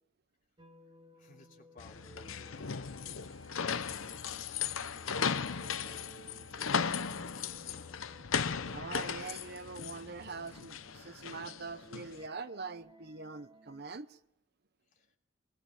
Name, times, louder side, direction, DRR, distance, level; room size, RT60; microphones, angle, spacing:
sound 1, 0.6-13.8, equal, 25° right, 2.7 m, -59 dB
voice 1, 1.2-7.5 14.9-15.2, left 2 dB, 40° left, 3.3 m, -61 dB
sound 2, 1.8-12.2, left 6 dB, 85° left, 0.9 m, -37 dB
Wind instrument woodwind instrument, 2.4-7.5, left 3 dB, 65° left, 3.0 m, -60 dB
voice 2, 8.7-14.2, right 4 dB, 50° right, 0.8 m, -43 dB
23.5 x 20.0 x 8.5 m
head